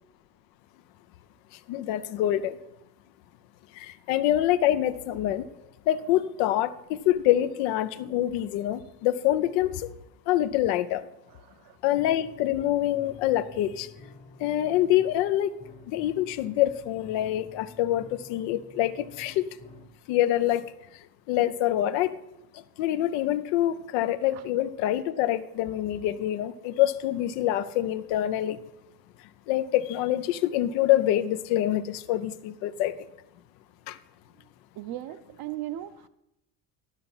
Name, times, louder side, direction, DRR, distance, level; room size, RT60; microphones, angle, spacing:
voice 1, 1.7-2.6 3.8-5.5 5.9-9.9 10.3-11.0 11.8-13.9 14.4-15.5 15.9-19.4 20.1-20.6 21.3-22.1 22.8-28.6 29.5-32.9 33.9-34.0, left 13 dB, 80° left, 13 dB, 0.7 m, -25 dB
voice 2, 11.3-11.8 24.3-24.4 34.4-34.5 34.8-36.1, right 13 dB, 55° right, 13 dB, 0.7 m, -38 dB
sound 1, 12.0-20.0, left 3 dB, 15° left, 0.9 m, -51 dB
11.5 x 5.8 x 5.6 m, 0.87 s
supercardioid pair, 100°, 43 cm